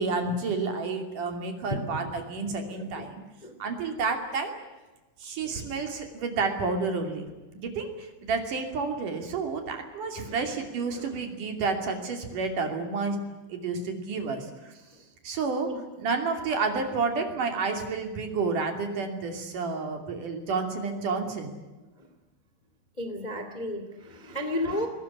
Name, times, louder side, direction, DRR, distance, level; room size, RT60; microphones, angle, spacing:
voice 1, 0.0-3.2 3.6-4.6 5.2-7.3 7.6-14.8 15.2-15.7 16.0-21.7, right 4 dB, 45° right, 4 dB, 3.7 m, -30 dB
voice 2, 2.6-3.1 3.4-3.6 10.2-10.6 10.9-11.1 14.9-15.0 15.6-15.8 22.0-22.1 23.0-24.9, left 1 dB, 50° left, 6 dB, 0.5 m, -34 dB
22.0 x 19.5 x 9.9 m, 1.1 s
omnidirectional pair, 5.8 m